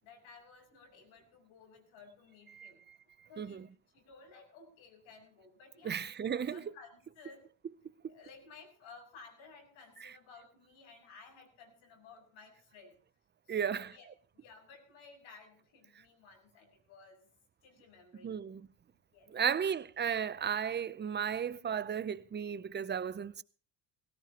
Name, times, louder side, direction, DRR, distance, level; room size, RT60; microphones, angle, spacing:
voice 1, 0.0-2.8 3.3-3.7 3.9-7.5 8.1-12.9 13.5-14.1 14.3-17.2 17.6-18.4 19.1-19.3, left 4 dB, 85° left, 7.3 m, -56 dB
voice 2, 2.5-3.0 3.4-3.7 5.8-6.6 10.0-10.1 13.5-13.9 18.2-18.7 19.3-23.4, right 7 dB, 25° right, 0.6 m, -35 dB
18.5 x 17.0 x 3.0 m
cardioid pair, 120°, 46 cm